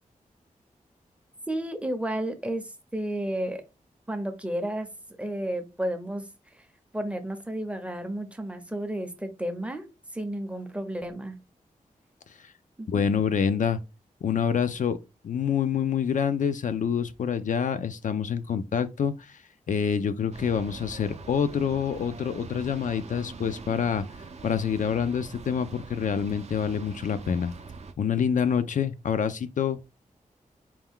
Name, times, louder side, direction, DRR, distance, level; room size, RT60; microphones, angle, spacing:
voice 1, 1.5-3.6 4.1-4.9 5.2-6.2 6.9-9.8 10.1-11.4 12.8-13.0, right 1 dB, 10° right, 0.6 m, -32 dB
voice 2, 12.9-13.8 14.2-15.0 15.2-19.4 19.7-27.5 28.0-29.8, left 7 dB, 65° left, 0.4 m, -27 dB
sound 1, 20.3-27.9, right 4 dB, 50° right, 0.5 m, -43 dB
4.5 x 2.2 x 3.6 m
wide cardioid pair, 115°, 14 cm